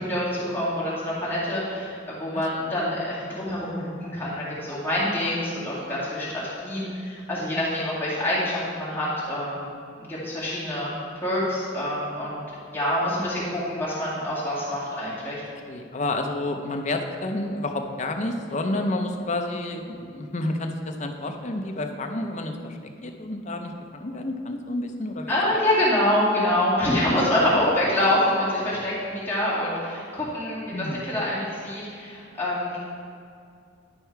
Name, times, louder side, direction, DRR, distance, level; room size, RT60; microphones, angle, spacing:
voice 1, 0.0-9.7 10.0-12.4 12.7-15.4 25.3-32.8, left 1 dB, 10° left, -9 dB, 2.2 m, -26 dB
voice 2, 15.7-25.4 30.7-31.0, left 2 dB, 40° left, 4 dB, 0.6 m, -30 dB
11.0 x 4.5 x 4.6 m, 2.4 s
head